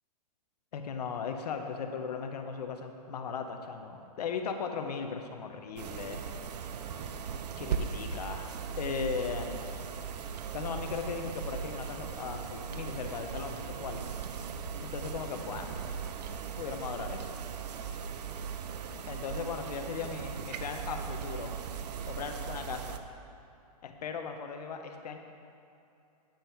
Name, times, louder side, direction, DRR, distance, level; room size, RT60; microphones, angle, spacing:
voice 1, 0.7-6.2 7.6-9.7 10.5-14.0 14.8-15.8 16.6-17.3 19.1-21.5 22.1-23.0 23.8-25.2, left 6 dB, 75° left, 5 dB, 0.9 m, -37 dB
sound 1, 5.8-23.0, right 6 dB, 80° right, 0.6 m, -38 dB
8.9 x 5.6 x 4.4 m, 2.7 s
hypercardioid pair, 155°, 21 cm